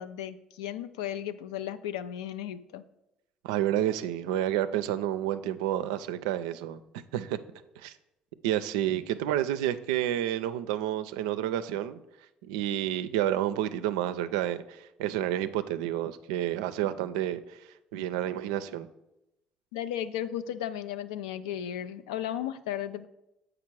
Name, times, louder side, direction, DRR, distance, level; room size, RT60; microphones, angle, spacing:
voice 1, 0.0-2.8 19.7-23.1, left 10 dB, 85° left, 12 dB, 0.3 m, -35 dB
voice 2, 3.4-6.8 7.1-7.4 7.8-7.9 8.4-12.0 12.5-17.6 17.9-18.9, right 12 dB, 85° right, 12 dB, 0.4 m, -30 dB
7.4 x 4.9 x 4.6 m, 0.91 s
hypercardioid pair, 60°, 3 cm